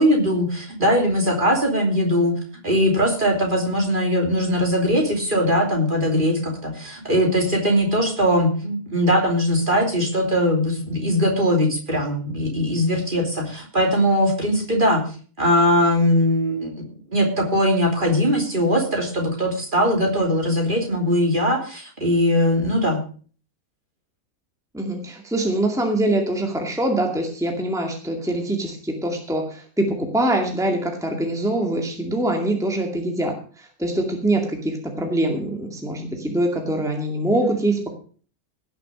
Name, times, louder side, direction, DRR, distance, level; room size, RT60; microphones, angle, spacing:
voice 1, 0.0-2.3 2.6-15.0 15.4-23.0, equal, 30° right, 1 dB, 3.3 m, -20 dB
voice 2, 24.7-37.9, right 1 dB, ahead, 2 dB, 2.2 m, -24 dB
17.5 x 6.9 x 6.3 m, 0.42 s
omnidirectional pair, 1.6 m